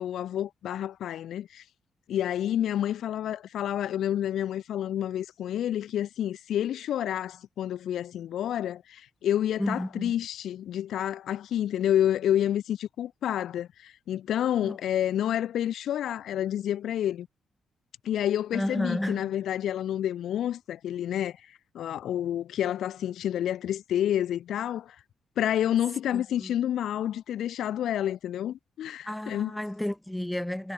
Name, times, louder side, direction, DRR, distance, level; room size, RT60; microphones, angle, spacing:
voice 1, 0.0-1.6 2.1-17.3 18.0-21.4 21.7-24.9 25.4-29.6, left 11 dB, 80° left, 1.5 m, -29 dB
voice 2, 9.6-10.1 14.6-14.8 18.5-19.3 26.1-26.5 29.1-30.7, left 1 dB, 5° left, 0.7 m, -32 dB
cardioid pair, 75°, 0 cm